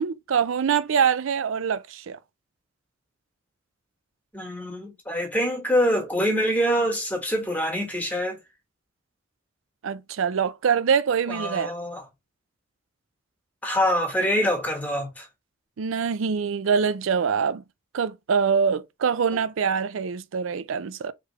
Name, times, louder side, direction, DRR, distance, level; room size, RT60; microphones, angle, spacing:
voice 1, 0.0-2.2 9.8-11.7 15.8-17.6 17.9-21.1, right 6 dB, 85° right, 0.4 m, -24 dB
voice 2, 4.3-8.4 11.3-12.0 13.6-15.3 19.3-19.4, equal, 10° left, 1.6 m, -25 dB
4.7 x 3.2 x 3.2 m
head